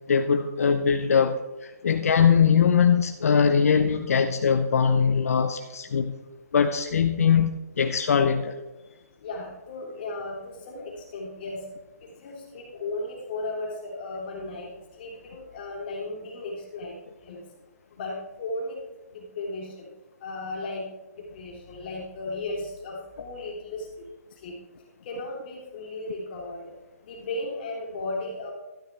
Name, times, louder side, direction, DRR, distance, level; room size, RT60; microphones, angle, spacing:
voice 1, 0.0-6.1 6.5-8.5, left 6 dB, 65° left, 7 dB, 0.8 m, -22 dB
voice 2, 9.2-11.6 12.0-14.7 15.0-16.9 17.2-17.4 17.9-18.8 19.1-19.9 20.2-20.8 21.1-24.1 24.4-24.6 25.1-26.7 27.0-28.5, left 2 dB, 35° left, -3 dB, 3.5 m, -35 dB
13.0 x 11.5 x 3.4 m, 1.1 s
hypercardioid pair, 165°, 9 cm